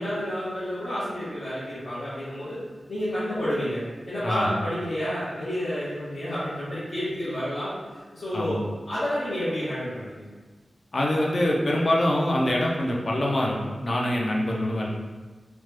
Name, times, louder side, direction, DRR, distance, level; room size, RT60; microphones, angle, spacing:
voice 1, 0.0-2.6 2.9-10.3, equal, 65° left, -14 dB, 1.0 m, -30 dB
voice 2, 4.2-4.5 8.3-8.6 10.9-13.6 13.8-14.9, left 1 dB, 45° left, -2 dB, 0.5 m, -24 dB
3.1 x 2.1 x 3.2 m, 1.3 s
wide cardioid pair, 130°, 0 cm